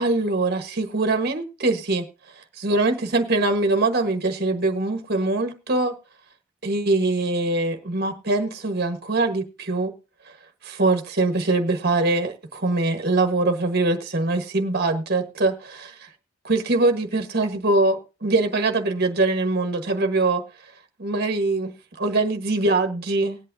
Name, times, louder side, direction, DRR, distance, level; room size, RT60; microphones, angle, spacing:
voice 1, 0.0-2.1 2.4-6.0 6.6-9.9 10.6-15.9 16.4-20.4 21.0-21.7 22.0-23.4, right 2 dB, 50° right, 1.3 m, -23 dB
20.0 x 8.4 x 2.6 m
head